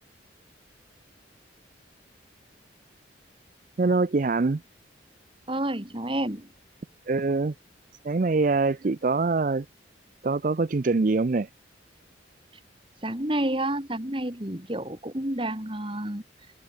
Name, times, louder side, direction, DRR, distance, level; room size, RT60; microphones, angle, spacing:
voice 1, 3.8-4.6 7.1-7.5 8.0-9.7 10.2-11.5, right 3 dB, 45° right, 0.5 m, -24 dB
voice 2, 5.5-6.5 13.0-16.2, right 1 dB, 25° right, 2.6 m, -29 dB
head